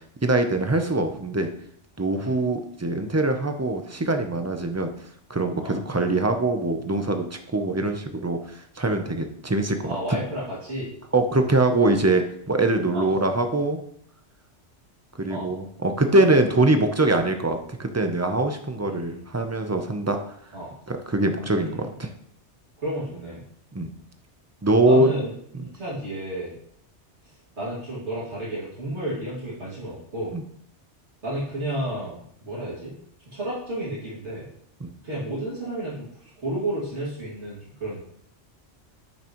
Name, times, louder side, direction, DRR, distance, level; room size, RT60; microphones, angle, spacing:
voice 1, 0.2-1.5 2.0-4.9 5.3-10.0 11.1-13.8 15.2-20.2 20.9-22.1 23.7-23.9 24.6-25.1 30.3-30.4 34.8-34.9, right 2 dB, 20° right, 6 dB, 0.6 m, -23 dB
voice 2, 9.8-10.9 12.9-13.1 15.3-15.5 18.9-19.3 20.5-20.7 21.4-21.9 22.8-23.4 24.8-26.5 27.6-30.3 31.2-32.9 33.3-34.5 35.0-36.1 36.4-38.0, right 1 dB, 70° right, -9 dB, 2.8 m, -32 dB
10.5 x 6.0 x 3.1 m, 0.69 s
omnidirectional pair, 1.2 m